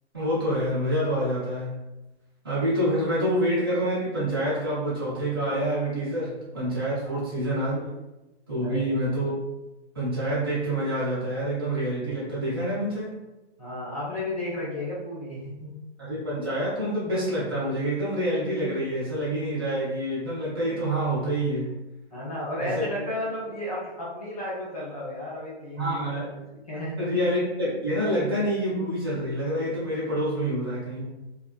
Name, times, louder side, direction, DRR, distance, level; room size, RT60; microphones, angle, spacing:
voice 1, 0.1-1.8 2.4-7.8 8.5-9.3 9.9-13.1 16.0-21.7 22.6-22.8 25.8-26.3 27.0-31.1, right 1 dB, 20° right, -9 dB, 0.6 m, -27 dB
voice 2, 8.6-9.1 13.6-15.7 22.1-26.0 26.3-27.1 31.0-31.1, left 1 dB, 35° left, -7 dB, 0.5 m, -33 dB
2.6 x 2.3 x 2.3 m, 1.0 s
hypercardioid pair, 180°, 34 cm